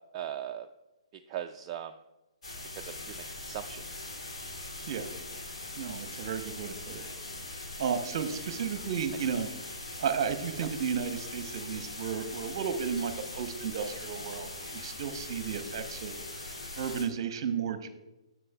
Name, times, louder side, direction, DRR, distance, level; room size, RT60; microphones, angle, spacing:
voice 1, 0.1-0.7 1.3-1.9 2.8-3.8 10.6-10.7, right 11 dB, 30° right, 5 dB, 0.3 m, -39 dB
sound 1, 2.4-17.0, left 2 dB, 80° left, 2.7 m, -41 dB
voice 2, 5.8-7.0 7.8-9.5 10.0-16.5 16.8-17.9, right 7 dB, 50° right, 9 dB, 0.8 m, -33 dB
9.6 x 7.4 x 2.3 m, 1.0 s
figure-of-eight pair, 135°, 3 cm